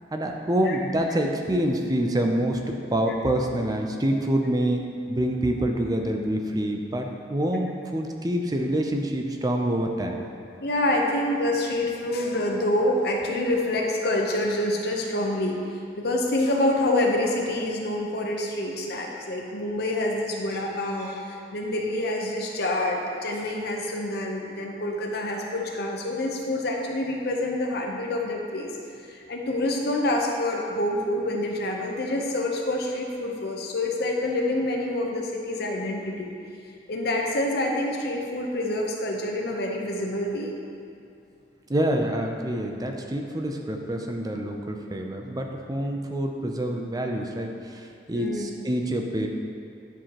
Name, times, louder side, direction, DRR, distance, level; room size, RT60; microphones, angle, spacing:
voice 1, 0.1-4.8 5.1-10.2 41.7-49.3, right 1 dB, 20° right, 3 dB, 0.5 m, -26 dB
voice 2, 10.6-15.6 16.0-28.7 29.1-36.3 36.9-40.5 43.7-43.8 48.1-48.5, left 1 dB, 65° left, 0 dB, 0.8 m, -27 dB
9.8 x 4.7 x 2.9 m, 2.5 s
head